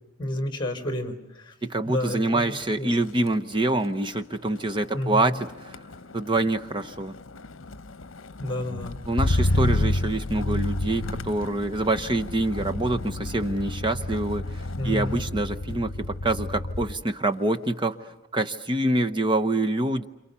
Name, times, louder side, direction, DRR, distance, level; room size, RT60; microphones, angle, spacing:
voice 1, 0.2-1.5 1.9-2.9 4.9-5.4 8.4-9.0 14.8-15.2, left 1 dB, 25° left, 7 dB, 4.3 m, -31 dB
voice 2, 1.6-5.8 6.1-7.1 9.1-20.1, right 2 dB, 25° right, 7 dB, 0.9 m, -26 dB
Motor vehicle (road), 1.9-2.3 2.6-17.0 17.4-17.9, left 2 dB, 75° left, 0.9 m, -31 dB
29.0 x 27.5 x 6.9 m, 0.90 s
head